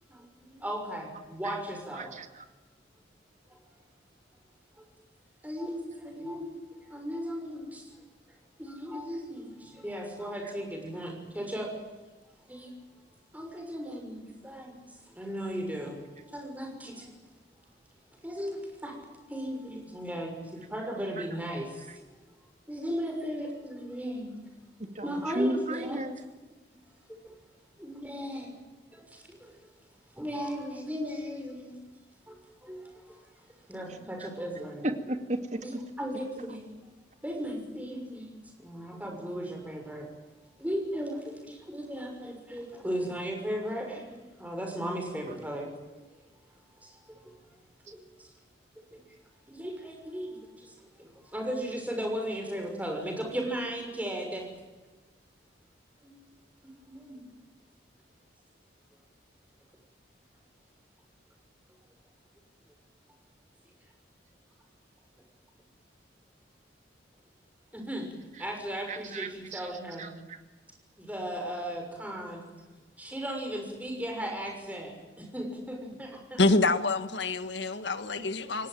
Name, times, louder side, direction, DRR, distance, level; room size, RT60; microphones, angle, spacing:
voice 1, 0.1-2.1 4.8-4.9 5.4-6.5 6.8-7.8 8.6-11.7 12.5-12.7 13.3-14.7 15.1-17.1 18.2-22.0 22.7-24.4 25.0-26.0 27.1-27.3 27.8-28.5 28.9-29.7 30.1-31.8 32.3-33.3 33.7-34.9 35.6-36.6 37.2-38.3 38.6-40.1 40.6-45.7 46.8-47.3 47.9-48.3 48.8-49.1 49.5-54.4 56.0-56.3 56.6-57.3 67.7-68.1 68.4-70.1 71.0-72.4 73.0-76.4, equal, 10° right, 2 dB, 6.2 m, -36 dB
voice 2, 1.9-2.4 10.4-10.5 21.2-21.3 24.9-26.2 33.9-34.3 34.8-35.8 68.9-70.4, right 1 dB, 40° right, 7 dB, 2.2 m, -35 dB
voice 3, 76.4-78.7, left 2 dB, 70° left, 10 dB, 1.6 m, -26 dB
28.5 x 17.5 x 9.2 m, 1.2 s
head